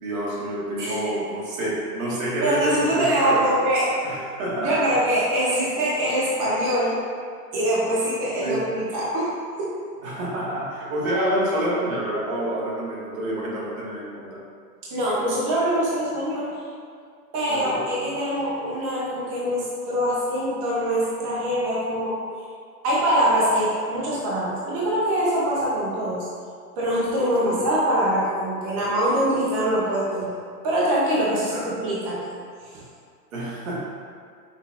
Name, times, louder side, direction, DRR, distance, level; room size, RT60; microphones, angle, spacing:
voice 1, 0.0-3.5 4.0-5.0 8.4-8.7 10.0-14.4 17.5-17.8 27.4-27.6 31.5-31.7 33.3-33.8, right 1 dB, 60° right, -5 dB, 1.4 m, -28 dB
voice 2, 2.4-3.9 4.5-6.9 7.5-9.3 9.6-9.8 14.8-16.5 17.3-22.2 22.8-26.3 26.8-30.3 30.6-32.2 32.7-32.8, right 1 dB, 20° right, -7 dB, 0.4 m, -23 dB
5.6 x 2.3 x 3.3 m, 2.2 s
hypercardioid pair, 140°, 47 cm